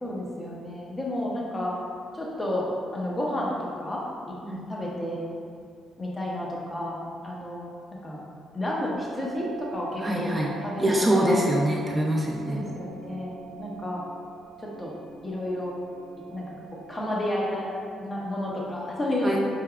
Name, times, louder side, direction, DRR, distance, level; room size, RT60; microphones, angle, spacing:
voice 1, 0.0-1.7 2.1-2.7 2.9-4.0 4.7-5.2 6.0-7.0 7.2-7.7 8.0-8.2 8.5-10.3 10.6-11.4 12.5-13.3 13.6-14.0 14.6-14.9 15.2-15.7 16.3-16.4 16.7-17.7 18.0-19.4, left 1 dB, 20° left, -4 dB, 0.9 m, -31 dB
sound 1, 8.9-17.0, right 10 dB, 55° right, 1.2 m, -44 dB
voice 2, 10.0-10.5 10.8-12.6 19.2-19.4, right 1 dB, 15° right, -3 dB, 0.7 m, -24 dB
4.6 x 3.5 x 2.3 m, 2.2 s
cardioid pair, 90°, 0 cm